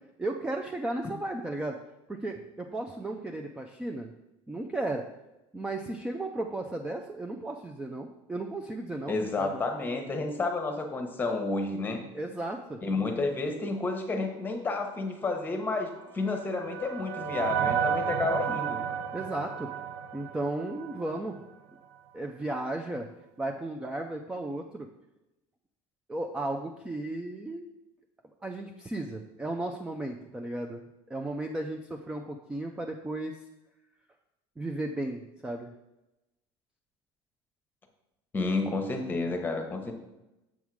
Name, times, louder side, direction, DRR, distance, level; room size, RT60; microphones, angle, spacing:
voice 1, 0.2-1.8 2.1-4.1 4.5-5.1 5.5-9.6 12.1-12.8 19.1-19.7 20.1-21.4 22.1-23.1 23.4-24.9 26.1-27.7 28.4-30.8 31.1-33.4 34.6-35.7, right 2 dB, 10° right, 3 dB, 0.4 m, -35 dB
voice 2, 9.1-12.0 12.8-18.8 38.3-39.9, left 3 dB, 15° left, 4 dB, 0.9 m, -31 dB
sound 1, 15.8-21.2, right 8 dB, 75° right, 0.5 m, -32 dB
7.2 x 3.6 x 6.1 m, 0.96 s
cardioid pair, 150°, 12 cm